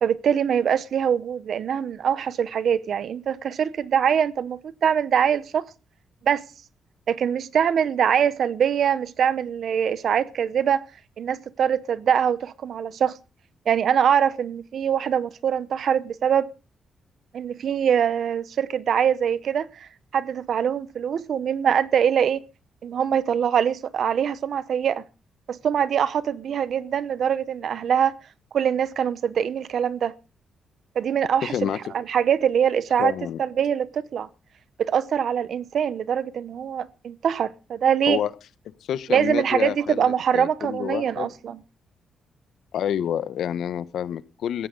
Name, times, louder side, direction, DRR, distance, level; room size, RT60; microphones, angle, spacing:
voice 1, 0.0-5.6 6.2-6.5 7.1-10.8 11.2-13.1 13.7-16.5 17.3-22.4 22.8-25.0 25.5-28.1 28.5-30.1 30.9-33.1 33.4-34.3 34.8-38.2 39.1-41.6, right 8 dB, 60° right, 0.9 m, -23 dB
voice 2, 31.4-31.8 33.0-33.4 38.1-38.3 38.9-41.3 42.7-44.7, left 9 dB, 75° left, 1.0 m, -28 dB
17.5 x 15.0 x 3.8 m
wide cardioid pair, 155°, 0 cm